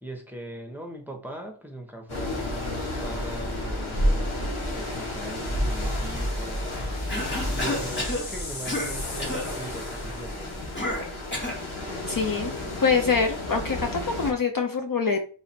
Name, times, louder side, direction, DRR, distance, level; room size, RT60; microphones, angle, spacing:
voice 1, 0.0-6.7 7.5-10.6, right 1 dB, 5° right, 2 dB, 0.9 m, -40 dB
sound 1, 2.1-14.3, left 1 dB, 80° left, 1.5 m, -31 dB
sound 2, 6.1-10.5, left 3 dB, 65° left, 1.2 m, -41 dB
Cough, 7.1-8.2 8.7-8.9 9.2-9.5 10.8-11.6, left 1 dB, 25° left, 1.3 m, -30 dB
voice 2, 12.1-12.5 12.8-15.2, left 5 dB, 45° left, 4 dB, 0.5 m, -24 dB
4.1 x 2.5 x 4.3 m, 0.40 s
wide cardioid pair, 65°, 48 cm